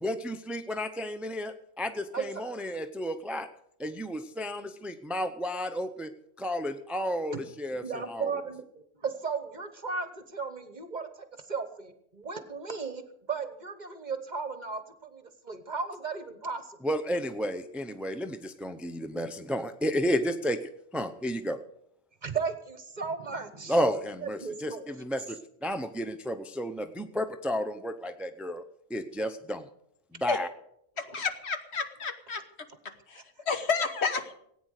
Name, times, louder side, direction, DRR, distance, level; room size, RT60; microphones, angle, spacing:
voice 1, 0.0-3.5 3.8-6.1 6.4-8.3 16.8-20.6 20.9-21.6 23.7-28.6 28.9-29.6 30.1-30.5, equal, ahead, 9 dB, 0.4 m, -32 dB
voice 2, 7.8-11.1 11.5-13.0 13.3-16.8 22.2-23.8 24.2-24.8, right 5 dB, 40° right, 10 dB, 1.2 m, -35 dB
voice 3, 31.0-32.4 32.8-34.3, left 5 dB, 60° left, 8 dB, 1.5 m, -31 dB
17.5 x 9.2 x 6.5 m, 0.73 s
omnidirectional pair, 1.3 m